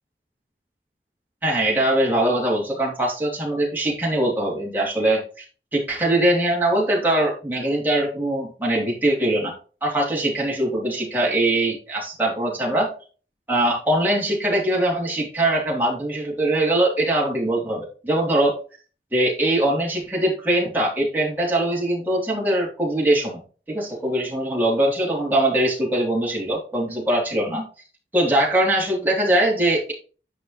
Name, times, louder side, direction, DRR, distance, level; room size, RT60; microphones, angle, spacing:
voice 1, 1.4-5.4 5.7-9.5 9.8-12.9 13.5-18.6 19.1-23.4 23.7-27.7 28.1-29.9, right 1 dB, 10° right, -3 dB, 3.1 m, -22 dB
10.0 x 5.4 x 3.0 m, 0.37 s
head